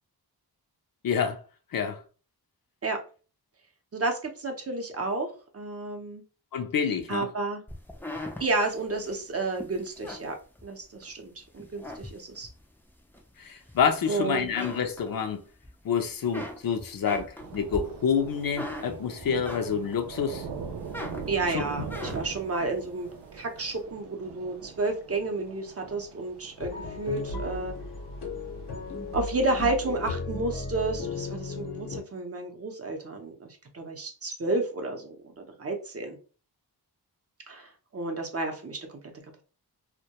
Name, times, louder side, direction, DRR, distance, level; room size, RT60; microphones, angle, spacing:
voice 1, 1.0-1.4 1.7-2.0 6.5-7.3 13.4-15.4 15.8-20.4 21.5-21.6, left 7 dB, 60° left, 0.5 m, -28 dB
voice 2, 3.9-6.2 7.1-7.6 8.4-10.4 10.6-12.5 14.1-14.5 21.3-23.1 23.3-27.7 29.1-36.2 37.5-39.0, right 2 dB, 35° right, 0.6 m, -31 dB
sound 1, 7.7-11.1 11.5-12.6 13.1-14.1 14.4-15.7 16.0-20.1 20.5-22.5, left 1 dB, 5° left, 0.3 m, -40 dB
Thunder / Rain, 17.4-30.2, right 5 dB, 85° right, 0.5 m, -42 dB
sound 2, 26.6-32.0, left 3 dB, 90° left, 0.8 m, -35 dB
2.2 x 2.1 x 2.8 m
wide cardioid pair, 75°, 40 cm